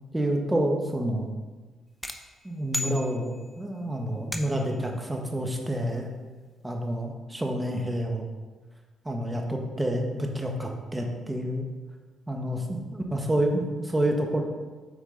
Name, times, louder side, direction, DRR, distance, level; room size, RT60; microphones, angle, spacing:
voice 1, 0.1-1.3 2.4-6.1 6.6-8.2 9.0-11.6 12.3-14.4, right 1 dB, 15° right, 2 dB, 1.2 m, -28 dB
sound 1, 2.0-3.6 4.3-4.8, left 1 dB, 5° left, 0.7 m, -36 dB
8.6 x 5.0 x 3.9 m, 1.3 s
cardioid pair, 90°, 0 cm